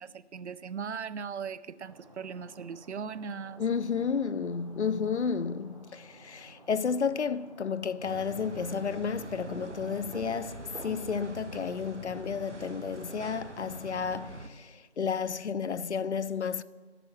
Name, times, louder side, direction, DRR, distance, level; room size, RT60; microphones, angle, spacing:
voice 1, 0.0-3.6, right 6 dB, 75° right, 0.5 m, -39 dB
Stream, 1.8-13.7, right 1 dB, 30° right, 1.0 m, -55 dB
voice 2, 3.6-16.6, left 6 dB, 75° left, 0.5 m, -32 dB
sound 1, 8.0-14.5, right 2 dB, 90° right, 1.3 m, -44 dB
10.0 x 9.9 x 6.1 m
figure-of-eight pair, 170°, 35 cm